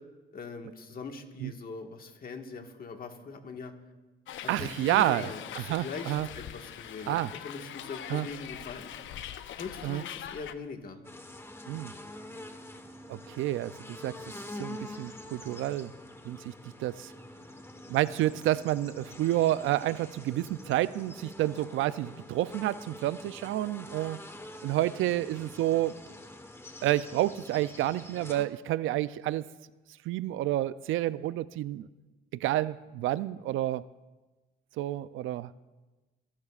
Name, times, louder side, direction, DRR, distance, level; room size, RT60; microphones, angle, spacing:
voice 1, 0.3-3.7 4.4-8.9 9.6-11.0, left 4 dB, 50° left, 4 dB, 1.6 m, -41 dB
Hiss, 4.3-10.6, left 10 dB, 75° left, 0.7 m, -42 dB
voice 2, 4.5-6.3 7.1-7.3 8.1-8.3 9.8-10.0 11.7-11.9 13.1-14.1 14.5-15.9 16.2-16.5 16.8-17.1 17.9-24.2 24.6-25.9 26.8-29.5 30.1-31.9 32.4-33.8 34.8-35.5, right 14 dB, 85° right, 16 dB, 0.4 m, -29 dB
sound 1, 11.0-28.5, left 1 dB, 10° left, 1.2 m, -46 dB
25.0 x 12.0 x 2.4 m, 1.2 s
cardioid pair, 90°, 20 cm